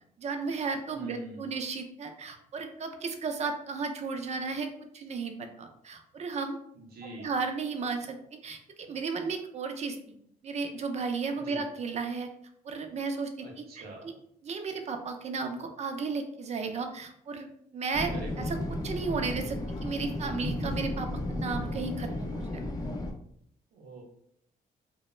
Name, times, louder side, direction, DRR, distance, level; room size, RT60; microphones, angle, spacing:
voice 1, 0.2-4.7 4.9-6.6 7.2-8.2 8.4-10.2 10.4-12.3 12.6-13.3 13.8-13.9 14.4-17.5 17.7-18.1 18.4-18.6 18.8-22.5, right 4 dB, 45° right, 6 dB, 0.4 m, -34 dB
voice 2, 0.9-1.5 6.7-7.4 11.4-11.6 13.4-14.1 18.1-18.3 23.7-24.0, right 2 dB, 85° right, 0 dB, 0.7 m, -45 dB
sound 1, 17.9-23.1, left 1 dB, 25° left, 0.4 m, -34 dB
2.2 x 2.1 x 3.0 m, 0.70 s
cardioid pair, 90°, 16 cm